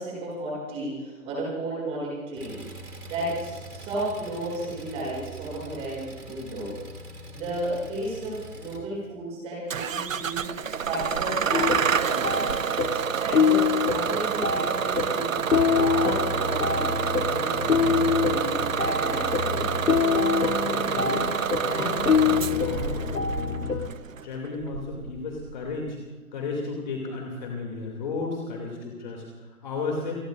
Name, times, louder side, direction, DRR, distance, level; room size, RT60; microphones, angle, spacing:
voice 1, 0.0-6.7 7.3-10.5 10.8-12.5 13.2-16.8 17.2-19.6, right 1 dB, 15° right, -5 dB, 7.2 m, -33 dB
Engine, 2.4-8.8, right 2 dB, 85° right, 4.9 m, -43 dB
Bus / Engine starting, 9.7-25.9, right 7 dB, 60° right, 0.7 m, -28 dB
sound 1, 11.5-23.9, left 6 dB, 70° left, 1.1 m, -25 dB
voice 2, 20.6-21.3 21.6-23.8 24.2-26.0 26.3-30.1, left 4 dB, 30° left, 0 dB, 2.5 m, -34 dB
29.0 x 20.0 x 2.5 m, 1.2 s
figure-of-eight pair, 155°, 45 cm